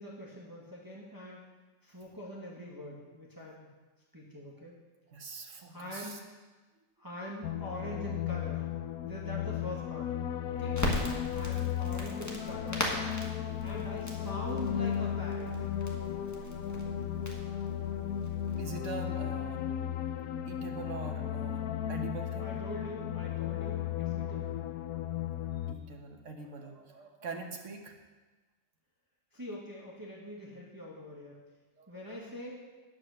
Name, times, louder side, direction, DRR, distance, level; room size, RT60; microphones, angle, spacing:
voice 1, 0.0-1.4 1.8-3.7 4.1-4.7 5.7-6.2 7.0-8.7 9.0-10.1 10.5-10.8 11.3-12.9 13.6-15.7 22.4-24.6 29.3-31.4 31.9-32.6, equal, 15° right, -4 dB, 1.6 m, -43 dB
voice 2, 5.1-6.2 18.6-19.7 20.4-22.6 25.6-27.9 31.8-32.0, right 4 dB, 60° right, 3 dB, 1.5 m, -43 dB
sound 1, 7.4-25.7, left 10 dB, 85° left, 1.1 m, -35 dB
Crackle, 10.7-18.7, equal, 10° left, 1.5 m, -39 dB
9.4 x 7.6 x 6.6 m, 1.2 s
omnidirectional pair, 1.5 m